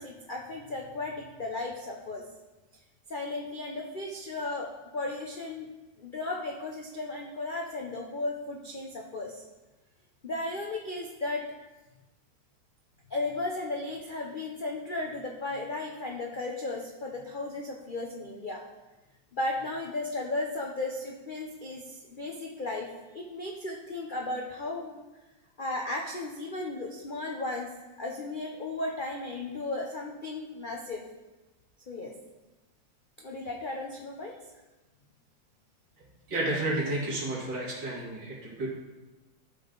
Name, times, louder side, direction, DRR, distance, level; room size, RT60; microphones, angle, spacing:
voice 1, 0.0-2.2 3.1-5.6 6.0-9.4 10.2-11.4 13.1-18.6 19.3-25.0 25.6-27.7 28.0-31.0 31.9-32.1 33.2-34.4, left 2 dB, 55° left, 0 dB, 0.5 m, -35 dB
voice 2, 36.3-38.7, right 2 dB, 65° right, -4 dB, 2.9 m, -31 dB
12.5 x 5.5 x 3.9 m, 1.1 s
omnidirectional pair, 2.1 m